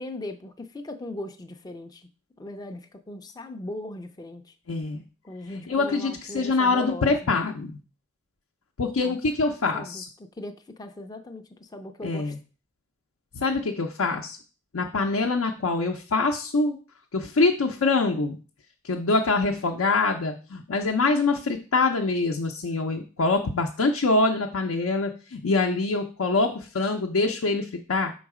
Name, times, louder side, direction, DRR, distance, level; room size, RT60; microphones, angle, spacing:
voice 1, 0.0-2.1 2.4-4.5 5.2-7.2 9.0-9.2 9.7-12.4, left 1 dB, 20° left, 6 dB, 0.4 m, -39 dB
voice 2, 4.7-5.0 5.5-7.7 8.8-10.1 12.0-12.4 13.3-14.4 14.7-16.8 17.1-18.4 18.8-28.1, left 3 dB, 75° left, 2 dB, 0.6 m, -24 dB
5.5 x 3.9 x 4.8 m, 0.38 s
head